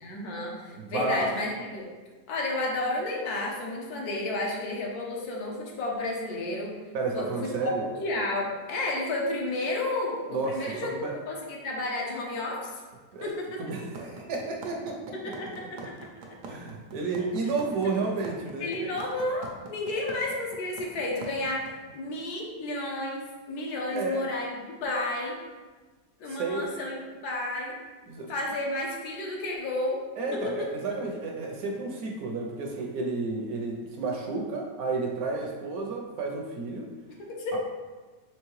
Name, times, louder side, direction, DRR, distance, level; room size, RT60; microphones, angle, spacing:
voice 1, 0.0-1.8 2.3-6.7 7.1-10.9 11.3-12.8 13.2-13.6 15.2-15.9 17.8-17.9 18.6-21.6 21.9-25.4 26.2-27.8 28.3-30.0 30.3-30.7 37.2-37.6, left 2 dB, 75° left, -1 dB, 1.2 m, -32 dB
voice 2, 0.7-1.3 6.9-7.8 10.3-11.2 13.1-13.3 13.6-15.1 16.5-19.0 23.9-24.2 26.3-26.7 28.1-28.3 30.2-36.9 37.5-37.6, right 3 dB, 70° right, 1 dB, 0.9 m, -31 dB
sound 1, 13.9-21.7, right 4 dB, 85° right, 1.3 m, -42 dB
4.6 x 3.0 x 3.0 m, 1.3 s
omnidirectional pair, 1.8 m